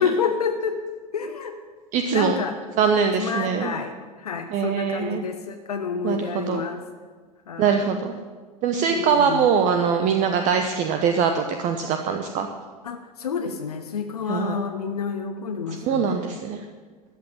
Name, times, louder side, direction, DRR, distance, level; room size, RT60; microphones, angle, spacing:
voice 1, 0.0-0.8 1.1-1.6 2.1-2.6 3.2-6.8 7.5-7.9 8.9-9.5 12.8-16.4, left 6 dB, 75° left, 6 dB, 1.0 m, -29 dB
voice 2, 1.9-2.4 2.8-3.7 4.5-5.2 6.0-6.6 7.6-8.1 8.6-12.5 14.3-14.6 15.9-16.6, right 6 dB, 40° right, 6 dB, 1.0 m, -22 dB
14.0 x 8.4 x 9.6 m, 1.5 s
figure-of-eight pair, 85°, 20 cm